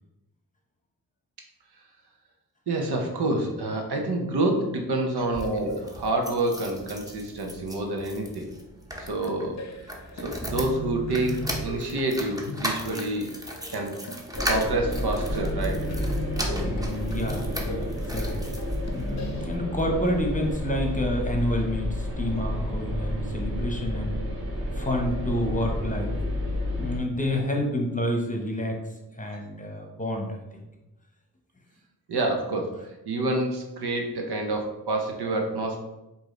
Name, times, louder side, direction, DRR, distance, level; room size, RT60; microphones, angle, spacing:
voice 1, 2.7-8.5 9.0-9.6 10.2-13.3 13.7-14.0 14.4-15.9 29.8-29.9 32.1-35.8, right 2 dB, 80° right, 2 dB, 0.9 m, -28 dB
sound 1, 5.2-19.2 19.8-20.7 21.0-21.1 21.3-21.4, equal, 10° right, 0.7 m, -37 dB
sound 2, 9.3-19.5, equal, 45° left, 0.6 m, -38 dB
sound 3, 14.3-27.0, left 1 dB, 35° right, 1.5 m, -30 dB
voice 2, 16.6-18.4 18.9-24.2 24.7-26.1 26.8-28.8 29.1-30.4, left 1 dB, 20° left, 1 dB, 0.9 m, -29 dB
4.9 x 2.8 x 3.7 m, 0.97 s
cardioid pair, 70°, 39 cm